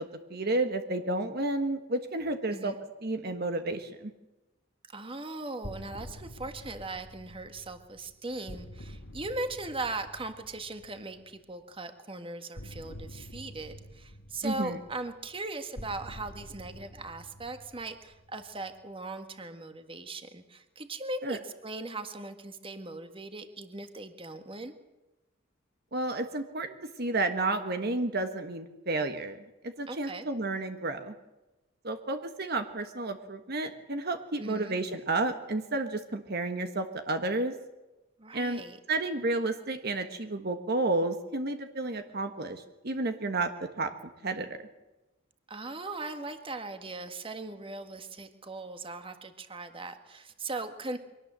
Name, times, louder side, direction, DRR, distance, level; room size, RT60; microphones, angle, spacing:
voice 1, 0.0-2.7 3.0-4.1 14.4-14.8 21.2-21.4 25.9-29.4 29.8-31.1 31.8-37.5 38.3-38.6 38.9-43.5 43.8-43.9 44.2-44.6, right 2 dB, 55° right, 7 dB, 1.4 m, -31 dB
voice 2, 4.9-24.7 29.9-30.3 34.4-34.7 38.2-38.8 45.5-51.0, right 2 dB, 25° right, 8 dB, 1.7 m, -39 dB
sound 1, 5.6-11.4 12.5-18.8, equal, 90° left, 2.2 m, -47 dB
23.5 x 18.5 x 7.6 m, 1.0 s
head